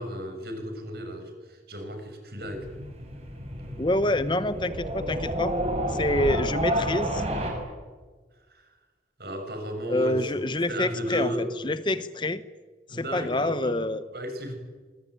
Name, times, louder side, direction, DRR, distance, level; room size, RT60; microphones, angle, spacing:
voice 1, 0.0-2.7 8.5-8.8 9.2-11.5 12.9-13.8 14.1-14.6, equal, 60° right, 6 dB, 6.5 m, -34 dB
sound 1, 2.4-7.5, right 1 dB, 35° right, 6.7 m, -30 dB
voice 2, 3.8-5.5 5.9-7.2 9.9-11.3 11.6-12.4 12.9-14.0, left 1 dB, 25° left, 13 dB, 0.9 m, -27 dB
25.5 x 22.0 x 10.0 m, 1.4 s
head